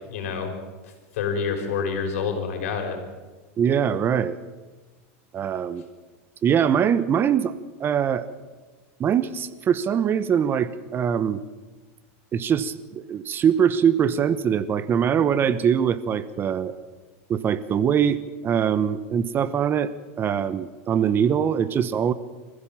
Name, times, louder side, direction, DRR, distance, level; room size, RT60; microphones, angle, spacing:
voice 1, 0.1-0.5 1.2-3.0, left 6 dB, 80° left, 5 dB, 5.1 m, -27 dB
voice 2, 3.6-4.4 5.3-5.8 6.4-7.5 7.8-8.3 9.0-11.4 12.3-16.7 17.3-22.1, right 8 dB, 30° right, 15 dB, 1.1 m, -22 dB
25.5 x 15.0 x 7.4 m, 1.3 s
supercardioid pair, 125°, 7 cm